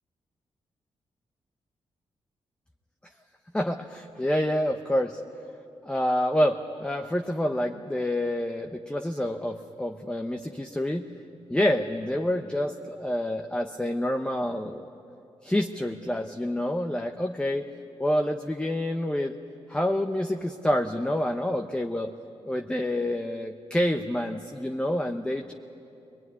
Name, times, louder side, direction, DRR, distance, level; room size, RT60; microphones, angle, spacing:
voice 1, 3.5-5.2 5.8-11.1 11.5-14.9 15.4-17.7 18.0-19.3 19.7-22.1 22.4-25.5, left 1 dB, 10° left, 4 dB, 0.9 m, -27 dB
22.5 x 21.5 x 9.7 m, 2.8 s
cardioid pair, 110°, 11 cm